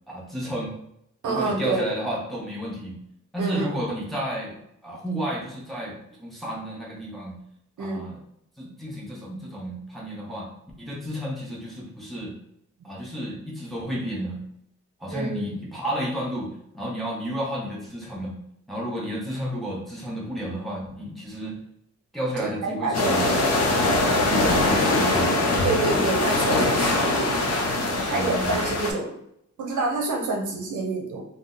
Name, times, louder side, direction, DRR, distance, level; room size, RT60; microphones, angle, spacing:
voice 1, 0.1-0.7 1.3-3.0 3.3-4.6 4.8-7.4 7.8-8.2 8.6-10.5 10.8-12.3 12.8-14.4 15.0-18.4 18.7-21.6 22.1-23.3 24.2-25.6 27.9-28.5, equal, ahead, -5 dB, 0.8 m, -32 dB
voice 2, 1.2-1.9 3.4-3.7 7.8-8.0 15.1-15.5 22.4-23.2 25.6-27.1 28.1-29.2 29.6-31.2, right 3 dB, 75° right, 1 dB, 0.7 m, -28 dB
sound 1, 22.9-28.9, left 2 dB, 55° left, 0.6 m, -22 dB
2.7 x 2.1 x 3.7 m, 0.75 s
wide cardioid pair, 135°, 30 cm